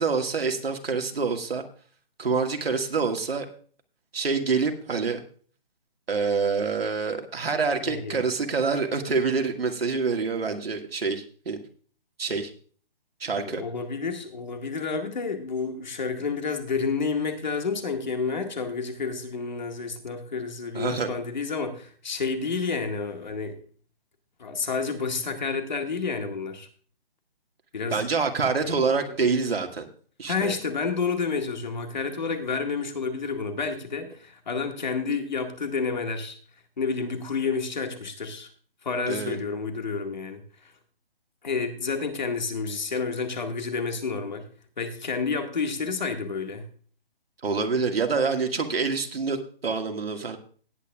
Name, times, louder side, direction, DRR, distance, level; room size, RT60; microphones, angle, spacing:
voice 1, 0.0-1.6 2.2-3.5 4.1-5.2 6.1-11.6 12.2-12.5 13.2-13.6 20.7-21.1 27.9-29.9 30.2-30.5 39.1-39.4 47.4-50.4, right 4 dB, 85° right, 4 dB, 2.1 m, -26 dB
voice 2, 7.8-8.2 13.3-23.6 24.4-26.7 27.7-28.0 28.6-28.9 30.3-36.4 36.8-38.5 38.8-40.7 41.4-44.5 44.8-46.7, left 4 dB, 50° left, 5 dB, 1.9 m, -30 dB
18.0 x 9.2 x 2.4 m, 0.44 s
hypercardioid pair, 180°, 29 cm